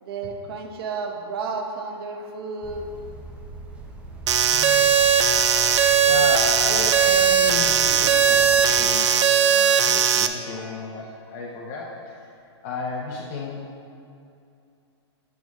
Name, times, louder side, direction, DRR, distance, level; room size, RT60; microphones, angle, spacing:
voice 1, 0.0-2.9 4.4-5.8 8.3-8.4 10.5-10.9 13.0-13.1, right 4 dB, 55° right, 3 dB, 0.9 m, -34 dB
sound 1, 2.6-8.9, right 2 dB, 10° right, 0.6 m, -41 dB
sound 2, 4.3-10.3, right 7 dB, 85° right, 0.5 m, -18 dB
voice 2, 6.0-12.3 12.6-13.7, left 3 dB, 35° left, -3 dB, 0.7 m, -33 dB
8.1 x 7.2 x 3.1 m, 2.6 s
hypercardioid pair, 150°, 15 cm